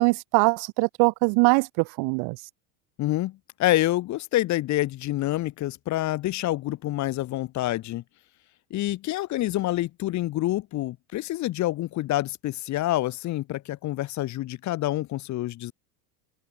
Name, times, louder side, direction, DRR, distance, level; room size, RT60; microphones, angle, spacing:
voice 1, 0.0-2.4, right 30 dB, 55° right, 0.8 m, -22 dB
voice 2, 3.0-8.0 8.7-15.7, left 15 dB, 35° left, 0.8 m, -27 dB
open air
supercardioid pair, 115°, 47 cm